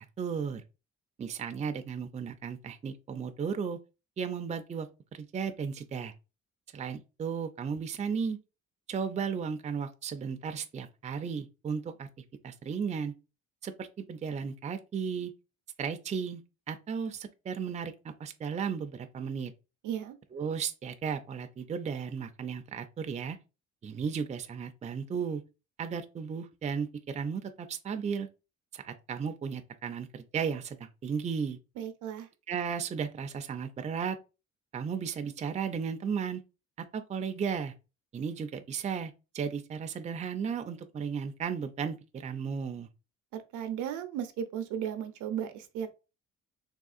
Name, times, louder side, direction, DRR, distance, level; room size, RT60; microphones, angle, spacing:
voice 1, 0.2-0.6 1.2-3.8 4.2-6.1 6.7-8.4 8.9-12.1 12.4-13.1 13.6-15.3 15.8-19.5 20.3-23.4 23.8-25.4 25.8-28.3 28.7-31.6 32.5-34.2 34.7-36.4 36.8-37.7 38.1-42.9, right 6 dB, 25° right, 0.4 m, -35 dB
voice 2, 19.8-20.1 31.8-32.3 43.3-45.9, right 9 dB, 80° right, 0.6 m, -35 dB
3.5 x 2.3 x 2.4 m
cardioid pair, 90°, 30 cm